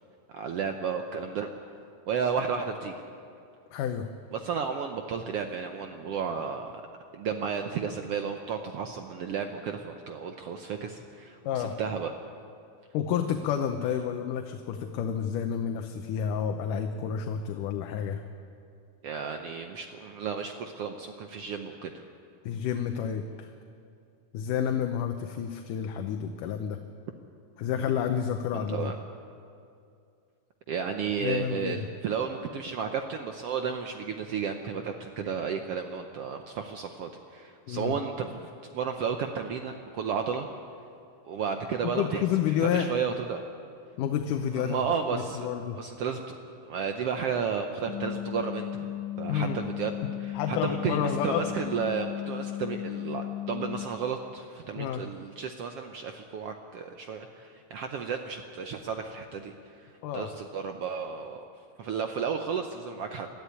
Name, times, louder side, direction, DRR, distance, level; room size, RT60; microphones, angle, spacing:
voice 1, 0.3-1.5 2.1-3.0 4.3-6.7 7.1-12.1 19.0-22.0 28.5-29.0 30.7-38.4 38.7-40.5 41.2-42.2 42.6-43.4 44.6-45.5 45.8-46.4 46.6-48.9 49.2-49.9 50.2-59.9 60.1-61.4 61.8-63.3, right 6 dB, 75° right, 5 dB, 1.3 m, -33 dB
voice 2, 3.7-4.1 11.4-11.8 12.9-18.2 22.4-23.5 24.3-26.8 27.6-28.9 31.2-31.9 37.7-38.0 41.8-42.9 44.0-45.8 49.3-49.6 50.3-51.5 54.8-55.0 60.0-60.3, left 8 dB, 80° left, 5 dB, 2.4 m, -30 dB
sound 1, 47.8-53.9, left 13 dB, 40° left, 2.1 m, -35 dB
21.0 x 13.0 x 9.6 m, 2.5 s
omnidirectional pair, 3.8 m